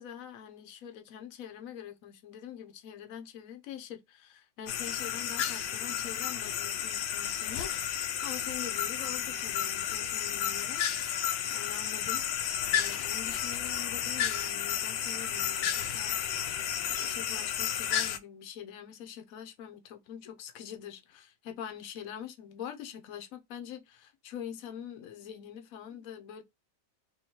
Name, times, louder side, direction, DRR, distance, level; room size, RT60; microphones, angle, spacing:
voice 1, 0.0-11.1 11.5-12.2 12.7-16.1 16.9-26.4, left 9 dB, 60° left, 1.0 m, -44 dB
sound 1, 4.7-18.2, left 10 dB, 90° left, 1.3 m, -32 dB
3.1 x 3.0 x 4.3 m
omnidirectional pair, 1.9 m